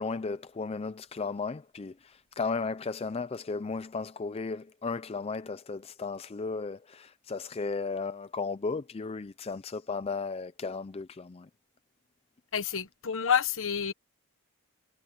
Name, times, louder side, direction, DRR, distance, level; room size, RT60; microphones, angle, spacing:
voice 1, 0.0-11.5, left 4 dB, 25° left, 0.4 m, -35 dB
voice 2, 12.5-13.9, left 7 dB, 60° left, 1.1 m, -28 dB
head